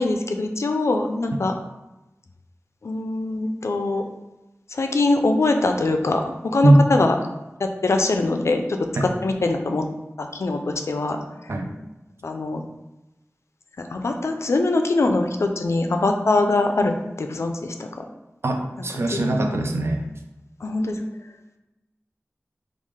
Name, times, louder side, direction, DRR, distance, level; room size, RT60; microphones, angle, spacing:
voice 1, 0.0-1.5 2.8-4.0 4.7-7.2 7.6-9.9 10.2-11.5 12.2-12.6 13.8-18.1 19.1-19.6 20.6-21.0, left 2 dB, 70° left, 5 dB, 0.3 m, -23 dB
voice 2, 18.4-20.0, right 1 dB, 60° right, 3 dB, 0.4 m, -20 dB
3.1 x 2.4 x 3.5 m, 0.99 s
wide cardioid pair, 65°, 5 cm